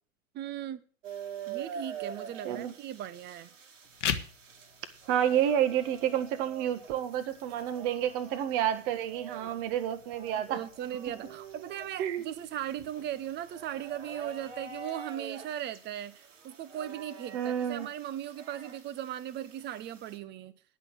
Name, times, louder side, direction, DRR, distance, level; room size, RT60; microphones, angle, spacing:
voice 1, 0.3-0.8 1.5-3.5 10.5-20.5, right 11 dB, 25° right, 15 dB, 0.8 m, -38 dB
sound 1, 1.0-20.2, right 6 dB, 70° right, 2.1 m, -46 dB
sound 2, 3.8-14.8, left 9 dB, 65° left, 1.3 m, -44 dB
voice 2, 5.1-10.6 12.0-12.3 17.3-17.9, right 10 dB, 45° right, 9 dB, 1.6 m, -29 dB
10.0 x 6.1 x 8.8 m, 0.42 s
figure-of-eight pair, 95°, 39 cm